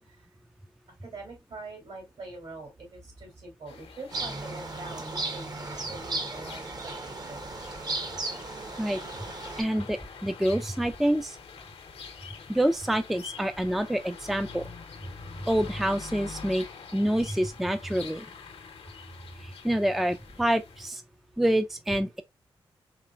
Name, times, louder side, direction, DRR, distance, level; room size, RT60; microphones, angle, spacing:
voice 1, 1.0-5.5 5.9-7.4, right 2 dB, 65° right, 2.8 m, -44 dB
sound 1, 3.7-20.9, left 5 dB, 80° left, 0.8 m, -46 dB
sound 2, 4.1-9.6, right 2 dB, 40° right, 0.9 m, -35 dB
voice 2, 9.6-11.4 12.5-14.7 15.5-16.7 16.9-18.3 19.4-21.0 21.4-22.2, right 1 dB, ahead, 0.4 m, -27 dB
4.2 x 3.0 x 2.3 m
cardioid pair, 55°, 10 cm